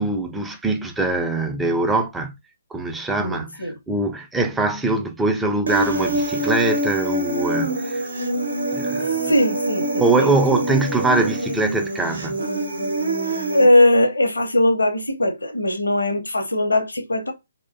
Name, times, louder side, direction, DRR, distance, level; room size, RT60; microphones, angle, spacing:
voice 1, 0.0-2.3 2.7-8.1 8.7-9.2 10.0-12.4, right 2 dB, 5° right, 0.3 m, -23 dB
voice 2, 3.2-3.8 9.3-10.6 13.5-17.3, left 1 dB, 80° left, 0.6 m, -20 dB
Human voice, 5.7-13.6, right 1 dB, 75° right, 0.7 m, -25 dB
2.5 x 2.2 x 2.3 m
figure-of-eight pair, 140°, 0 cm